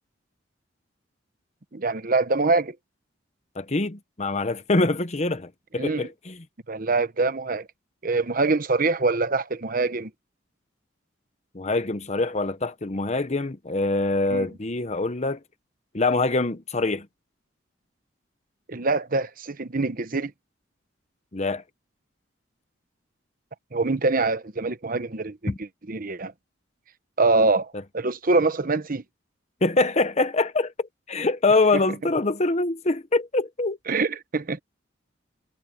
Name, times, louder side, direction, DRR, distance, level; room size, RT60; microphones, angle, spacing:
voice 1, 1.7-2.7 5.8-6.1 6.7-7.7 8.0-10.1 14.3-14.5 18.7-20.3 23.7-26.3 27.2-29.0 33.9-34.6, right 3 dB, 45° right, 1.0 m, -24 dB
voice 2, 3.6-6.4 11.5-15.4 15.9-17.1 21.3-21.6 25.5-25.6 29.6-33.8, left 2 dB, 35° left, 0.9 m, -24 dB
head